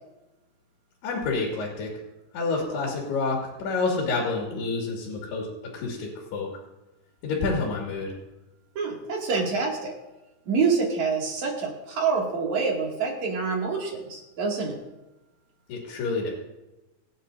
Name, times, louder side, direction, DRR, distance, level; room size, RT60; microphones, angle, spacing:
voice 1, 1.0-2.0 2.3-5.5 5.7-6.5 7.2-8.2 15.7-16.3, left 3 dB, 85° left, -2 dB, 4.2 m, -28 dB
voice 2, 8.7-9.9 10.5-14.7, right 5 dB, 50° right, -2 dB, 3.4 m, -26 dB
26.0 x 9.2 x 2.7 m, 1.0 s
omnidirectional pair, 4.6 m